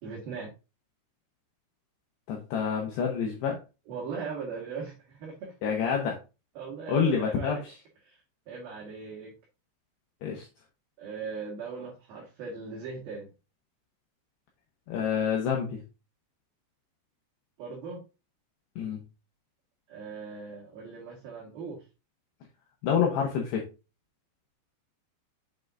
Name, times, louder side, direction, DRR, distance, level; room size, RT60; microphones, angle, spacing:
voice 1, 0.0-0.5 3.9-5.5 6.6-7.6 8.0-8.2 8.5-9.3 11.0-13.3 17.6-18.0 19.9-21.8, right 5 dB, 60° right, -3 dB, 2.8 m, -39 dB
voice 2, 2.3-3.6 5.6-6.2 6.9-7.7 10.2-10.5 14.9-15.8 18.8-19.0 22.8-23.7, left 7 dB, 75° left, 0 dB, 2.6 m, -27 dB
7.7 x 5.5 x 2.5 m, 0.29 s
omnidirectional pair, 5.8 m